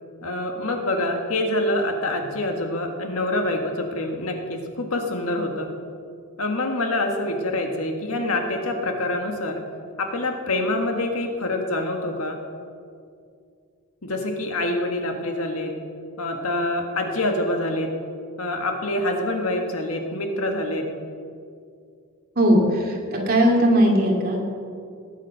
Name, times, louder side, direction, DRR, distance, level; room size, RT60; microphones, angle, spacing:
voice 1, 0.2-5.7 6.4-9.6 10.0-12.4 14.0-15.8 16.2-18.0 18.4-20.9, left 1 dB, 85° left, 3 dB, 1.6 m, -26 dB
voice 2, 22.4-24.4, equal, 45° right, -1 dB, 2.5 m, -19 dB
19.0 x 7.4 x 5.6 m, 2.3 s
head